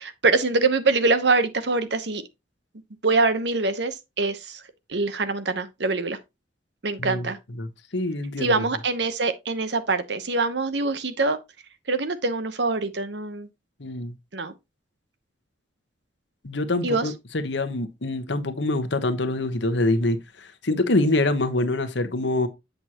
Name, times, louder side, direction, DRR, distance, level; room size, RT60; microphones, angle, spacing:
voice 1, 0.0-2.2 3.0-4.6 4.9-6.2 6.8-7.4 8.4-11.4 11.9-13.5 14.3-14.5 16.8-17.0, right 3 dB, 65° right, 1.0 m, -24 dB
voice 2, 7.0-7.3 7.6-8.7 13.8-14.1 16.4-22.5, left 2 dB, 75° left, 1.1 m, -25 dB
8.0 x 6.2 x 2.9 m
head